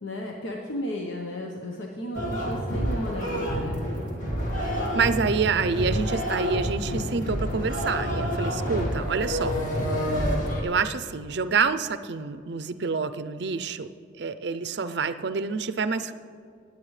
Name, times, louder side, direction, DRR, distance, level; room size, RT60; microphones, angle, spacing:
voice 1, 0.0-3.9, left 1 dB, 75° left, 0 dB, 1.0 m, -34 dB
sound 1, 2.1-10.6, equal, 40° left, 2.1 m, -28 dB
voice 2, 4.9-9.6 10.6-13.9 14.2-16.1, right 5 dB, 55° right, 11 dB, 0.5 m, -27 dB
19.5 x 8.4 x 3.2 m, 2.3 s
head